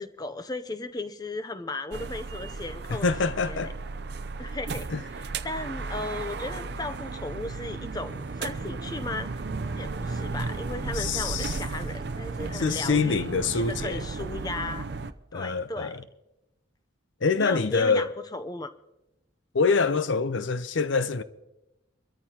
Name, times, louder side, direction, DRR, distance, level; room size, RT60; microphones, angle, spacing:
voice 1, 0.0-3.1 3.4-3.7 4.4-4.9 5.2-9.3 9.7-13.2 13.5-14.9 15.3-16.0 17.3-18.7, left 2 dB, 20° left, 0.5 m, -36 dB
sound 1, 1.9-15.1, right 3 dB, 55° right, 0.5 m, -34 dB
voice 2, 2.9-3.7 4.9-5.0 10.9-11.6 12.5-14.0 15.3-16.0 17.2-18.1 19.5-21.2, left 4 dB, 75° left, 0.6 m, -25 dB
23.5 x 13.5 x 2.9 m
head